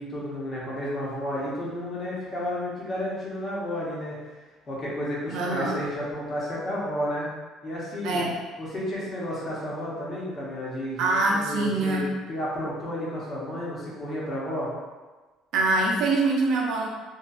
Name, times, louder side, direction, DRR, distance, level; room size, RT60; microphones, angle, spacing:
voice 1, 0.0-4.2 4.7-7.3 7.6-8.2 8.6-12.0 12.3-14.7, equal, 35° left, -6 dB, 0.9 m, -32 dB
voice 2, 5.3-5.8 8.0-8.3 11.0-12.1 15.5-16.9, right 2 dB, 70° right, -1 dB, 0.5 m, -24 dB
2.7 x 2.4 x 2.3 m, 1.3 s
cardioid pair, 120°, 0 cm